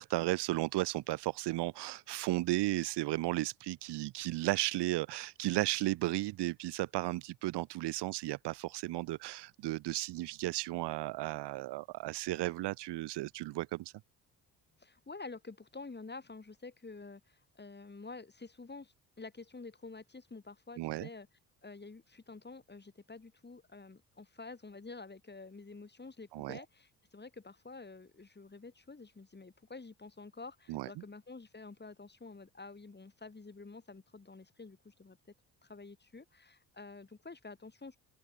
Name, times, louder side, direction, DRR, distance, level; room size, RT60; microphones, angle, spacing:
voice 1, 0.0-13.9 20.8-21.1 26.3-26.6 30.7-30.9, right 18 dB, 65° right, 1.2 m, -34 dB
voice 2, 14.8-21.3 21.6-35.2 35.6-38.0, left 3 dB, 25° left, 3.9 m, -49 dB
open air
hypercardioid pair, 50°, 43 cm